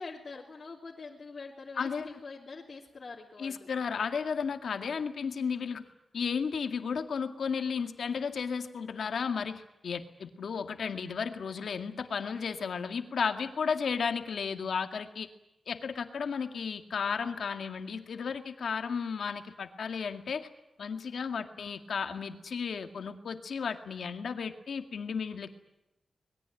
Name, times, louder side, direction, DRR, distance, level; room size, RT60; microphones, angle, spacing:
voice 1, 0.0-3.7, left 4 dB, 40° left, -4 dB, 3.1 m, -44 dB
voice 2, 1.8-2.1 3.4-5.8 6.1-15.3 15.7-20.5 20.8-25.5, left 6 dB, 85° left, 6 dB, 2.0 m, -34 dB
26.0 x 21.5 x 9.1 m, 0.90 s
wide cardioid pair, 160°, 0 cm